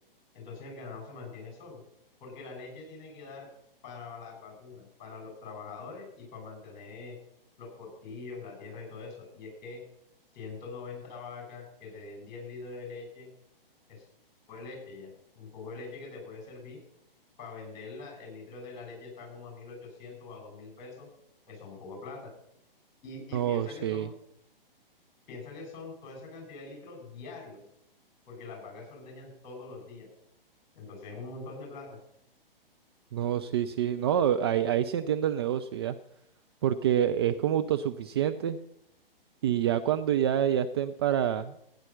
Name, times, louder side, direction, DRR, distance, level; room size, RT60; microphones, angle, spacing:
voice 1, 0.3-1.8 2.2-3.5 3.8-7.2 7.6-9.8 10.3-13.3 13.9-14.1 14.5-15.1 15.3-16.8 17.4-21.1 21.5-22.3 23.0-24.1 25.3-27.6 28.3-30.1 30.7-32.0, left 4 dB, 30° left, 1 dB, 6.7 m, -43 dB
voice 2, 23.3-24.1 33.1-36.0 36.6-38.6 39.4-41.5, right 10 dB, 30° right, 8 dB, 0.4 m, -27 dB
15.5 x 9.5 x 5.7 m, 0.77 s
figure-of-eight pair, 120°, 29 cm